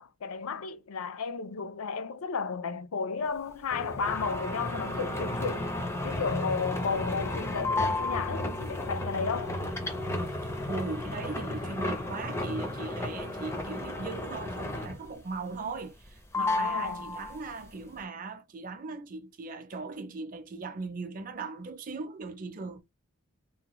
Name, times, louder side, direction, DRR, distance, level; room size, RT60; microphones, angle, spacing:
voice 1, 0.0-5.7 6.0-9.6 16.4-17.0, left 5 dB, 80° left, 0.5 m, -33 dB
sound 1, 3.7-15.2 15.5-16.1 16.3-17.6, left 2 dB, 10° left, 0.4 m, -33 dB
voice 2, 10.3-22.8, right 3 dB, 40° right, 0.5 m, -39 dB
2.8 x 2.2 x 3.0 m
head